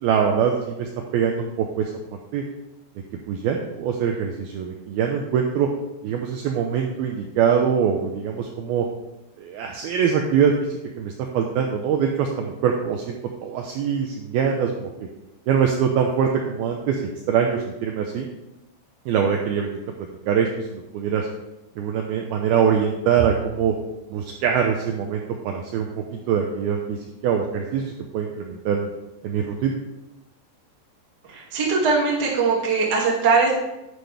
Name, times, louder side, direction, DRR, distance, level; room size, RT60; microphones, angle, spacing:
voice 1, 0.0-1.9 2.3-2.4 3.3-5.7 6.0-8.9 9.4-10.5 11.0-13.2 13.4-14.9 15.5-17.0 17.3-18.3 19.1-19.8 20.3-21.3 21.8-23.7 24.1-27.0 27.2-28.9 29.2-29.8, right 7 dB, 85° right, 1 dB, 2.1 m, -23 dB
voice 2, 31.3-33.5, right 4 dB, 35° right, -4 dB, 1.8 m, -20 dB
10.5 x 9.6 x 3.5 m, 0.98 s
omnidirectional pair, 5.4 m